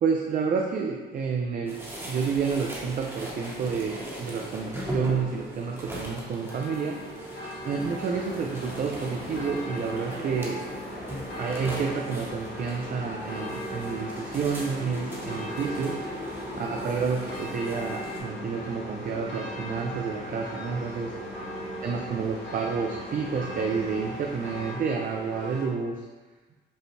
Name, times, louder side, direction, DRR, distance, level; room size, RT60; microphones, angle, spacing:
voice 1, 0.0-7.0 7.6-10.6 11.3-15.9 16.6-21.1 21.8-26.0, right 5 dB, 45° right, 0 dB, 0.4 m, -29 dB
sound 1, 1.7-18.2, equal, 10° right, 0.9 m, -39 dB
sound 2, 6.4-25.7, equal, 65° left, 1.2 m, -40 dB
sound 3, 7.8-24.7, left 2 dB, 35° left, 1.1 m, -41 dB
5.2 x 2.1 x 3.2 m, 1.3 s
cardioid pair, 90°, 20 cm